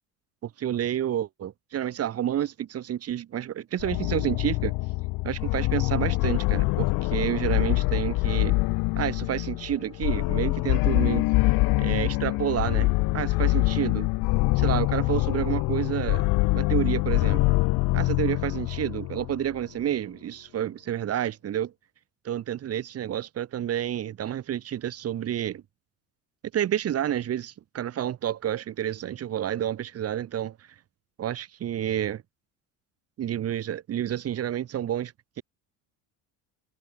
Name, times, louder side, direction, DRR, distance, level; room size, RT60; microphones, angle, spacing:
voice 1, 0.6-4.7 5.2-8.6 9.0-11.3 11.8-14.1 14.6-16.2 16.5-17.4 17.9-21.7 22.2-25.6 26.5-30.6 31.2-32.2 33.2-35.1, right 11 dB, 40° right, 0.8 m, -29 dB
sound 1, 3.8-19.5, left 23 dB, 60° left, 0.5 m, -25 dB
supercardioid pair, 85°, 40 cm